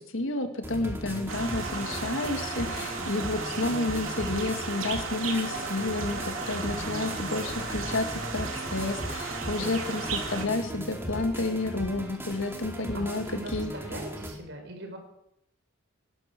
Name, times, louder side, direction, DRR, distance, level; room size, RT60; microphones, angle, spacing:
voice 1, 0.0-13.7, left 2 dB, 75° left, 6 dB, 2.2 m, -31 dB
sound 1, 0.6-14.3, equal, 10° right, 2.5 m, -37 dB
sound 2, 1.3-10.5, right 4 dB, 90° right, 3.0 m, -35 dB
voice 2, 3.0-3.9 6.7-7.2 9.5-10.2 12.8-15.0, right 1 dB, 60° right, 4 dB, 4.6 m, -43 dB
18.5 x 11.5 x 6.1 m, 0.79 s
head